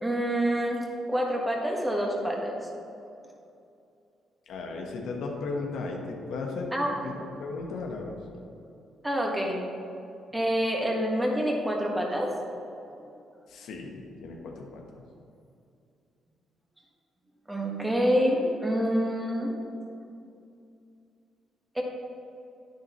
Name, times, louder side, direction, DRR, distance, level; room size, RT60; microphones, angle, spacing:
voice 1, 0.0-2.6 6.7-7.0 9.0-9.6 10.3-12.3 17.5-19.5 21.7-21.8, equal, 10° right, -1 dB, 1.7 m, -27 dB
voice 2, 4.5-6.7 7.0-8.1 13.5-14.8, left 3 dB, 80° left, 1 dB, 1.3 m, -35 dB
9.9 x 9.4 x 3.1 m, 2.6 s
cardioid pair, 90°, 0 cm